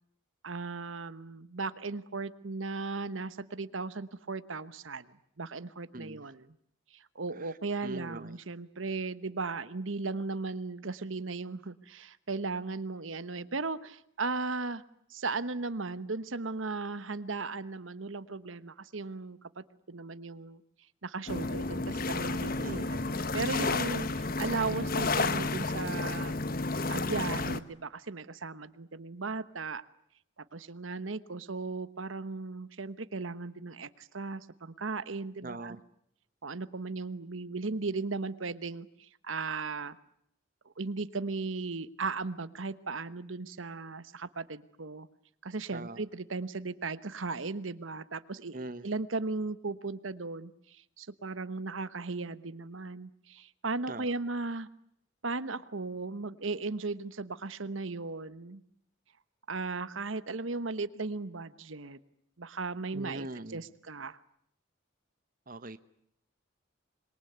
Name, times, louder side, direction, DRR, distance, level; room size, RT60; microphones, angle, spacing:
voice 1, 0.4-5.1 5.4-6.6 6.9-14.8 15.1-20.6 21.0-26.3 26.9-29.8 30.5-35.8 36.4-40.0 40.8-45.1 45.4-48.6 48.8-54.7 55.2-58.6 59.5-62.0 62.4-64.2, right 3 dB, 85° right, 1.2 m, -36 dB
voice 2, 5.9-6.2 7.8-8.4 22.6-22.9 35.4-35.8 45.7-46.0 48.5-48.8 53.9-54.1 62.9-63.6 65.5-65.8, right 2 dB, 45° right, 1.1 m, -41 dB
sound 1, 21.3-27.6, left 3 dB, 45° left, 1.1 m, -31 dB
26.5 x 22.5 x 9.5 m
head